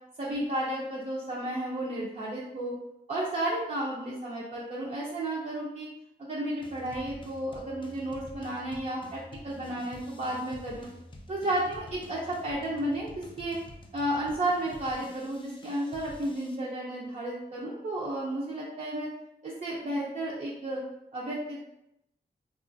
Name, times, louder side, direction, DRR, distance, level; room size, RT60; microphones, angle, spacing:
voice 1, 0.2-2.7 3.1-5.9 6.2-10.9 11.3-13.6 13.9-19.1 19.4-20.8 21.1-21.7, right 1 dB, 45° right, -5 dB, 0.5 m, -32 dB
sound 1, 6.6-16.6, left 1 dB, 30° left, 0.4 m, -49 dB
2.9 x 2.3 x 2.5 m, 0.84 s
wide cardioid pair, 105°, 17 cm